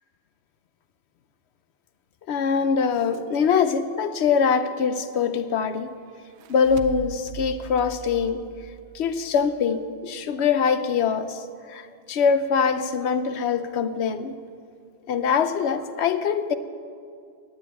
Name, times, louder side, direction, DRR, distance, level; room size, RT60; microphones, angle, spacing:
voice 1, 2.3-5.9 6.5-8.5 8.9-14.4 15.1-16.5, left 6 dB, 85° left, 11 dB, 1.0 m, -23 dB
sound 1, 6.2-9.5, right 11 dB, 85° right, 0.8 m, -40 dB
9.8 x 8.8 x 8.6 m, 2.3 s
omnidirectional pair, 1.1 m